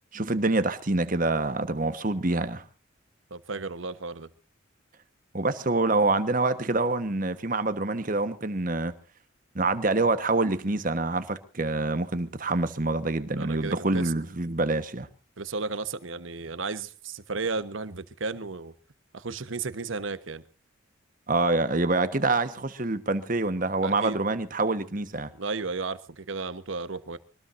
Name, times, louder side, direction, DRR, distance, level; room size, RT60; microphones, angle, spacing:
voice 1, 0.1-2.6 5.3-8.9 9.5-15.1 21.3-25.3, right 2 dB, 40° right, 1.3 m, -26 dB
voice 2, 3.3-4.3 13.4-14.1 15.4-18.7 19.1-20.4 23.8-24.2 25.4-27.2, right 4 dB, 75° right, 1.2 m, -33 dB
24.0 x 19.0 x 2.6 m
head